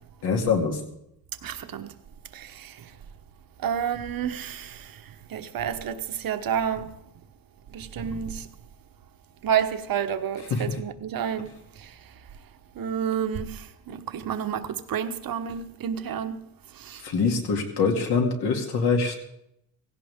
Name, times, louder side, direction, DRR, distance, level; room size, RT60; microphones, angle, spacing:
voice 1, 0.2-0.8 10.5-10.6 17.0-19.2, left 5 dB, 65° left, 2.6 m, -24 dB
voice 2, 1.4-1.9 2.3-2.7 3.6-4.8 5.3-6.9 7.7-8.5 9.4-11.5 12.8-13.6 13.9-16.4 16.9-17.0, right 8 dB, 55° right, 1.2 m, -29 dB
17.0 x 16.5 x 3.6 m
cardioid pair, 125°, 42 cm